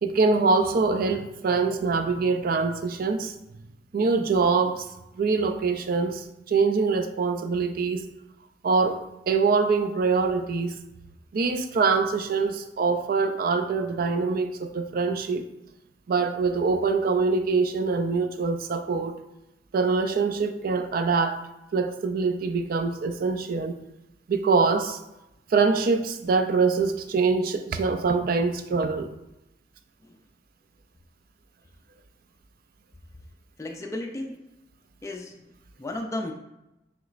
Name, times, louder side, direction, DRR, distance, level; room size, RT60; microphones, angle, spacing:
voice 1, 0.0-3.3 3.9-4.9 5.2-8.0 8.6-9.0 9.3-10.7 11.3-15.5 16.1-19.2 19.7-21.4 21.7-23.8 24.3-25.0 25.5-29.1, right 4 dB, 55° right, 9 dB, 0.4 m, -24 dB
voice 2, 33.6-34.4 35.0-35.5 35.8-36.3, left 1 dB, 15° left, 2 dB, 0.3 m, -34 dB
6.0 x 3.0 x 2.5 m, 0.92 s
head